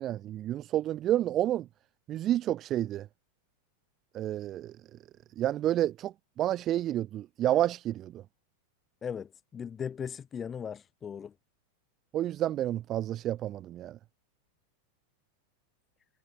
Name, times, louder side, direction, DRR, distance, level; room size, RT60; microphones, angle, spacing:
voice 1, 0.0-1.7 2.1-3.1 4.1-4.7 5.4-8.2 12.1-14.0, right 12 dB, 30° right, 0.5 m, -30 dB
voice 2, 9.0-11.3, left 7 dB, 20° left, 1.6 m, -38 dB
figure-of-eight pair, 90°, 0 cm